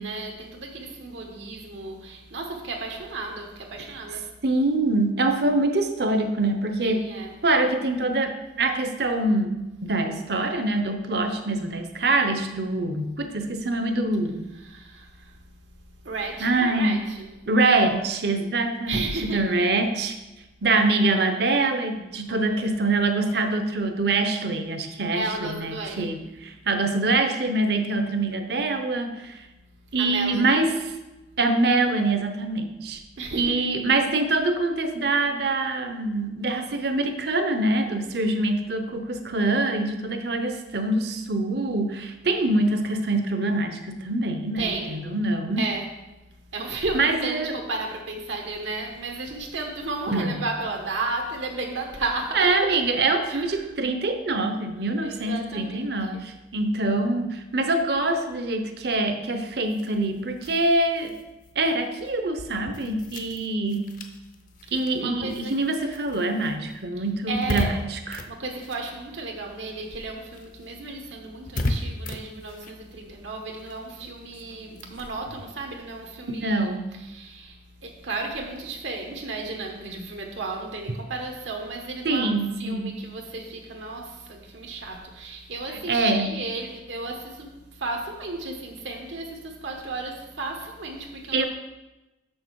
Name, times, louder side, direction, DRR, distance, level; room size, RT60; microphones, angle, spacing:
voice 1, 0.0-4.3 6.8-7.5 14.5-15.4 15.7-17.3 18.9-19.5 20.0-20.1 22.3-22.8 25.1-26.3 29.9-30.6 33.2-33.6 44.6-45.0 45.6-46.0 46.4-52.8 53.3-53.7 54.8-56.2 64.6-65.5 67.0-67.9 68.3-91.4, right 3 dB, 80° right, 1 dB, 1.2 m, -34 dB
voice 2, 4.4-7.1 7.4-14.5 16.4-17.0 17.5-20.2 20.6-29.4 29.9-30.9 31.4-33.0 33.3-45.6 46.9-47.6 50.1-50.4 52.3-61.2 61.6-63.9 64.7-68.3 76.3-76.9 82.0-83.0 85.9-86.3 91.3-91.4, right 2 dB, 60° right, 7 dB, 0.8 m, -24 dB
sound 1, 59.6-69.5 69.8-76.8, left 1 dB, 45° left, 0.6 m, -37 dB
6.4 x 6.4 x 4.7 m, 1.0 s
head